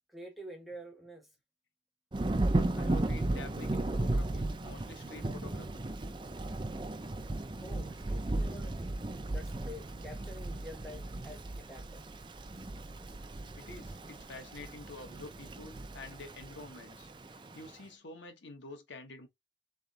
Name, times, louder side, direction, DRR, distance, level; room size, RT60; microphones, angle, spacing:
voice 1, 0.1-1.3 7.6-9.0 9.3-12.1, equal, ahead, 0.8 m, -48 dB
Thunder / Rain, 2.1-17.7, right 2 dB, 25° right, 0.5 m, -35 dB
voice 2, 2.8-5.9 13.6-17.1 17.5-19.3, left 2 dB, 85° left, 1.2 m, -48 dB
3.8 x 3.4 x 4.0 m
head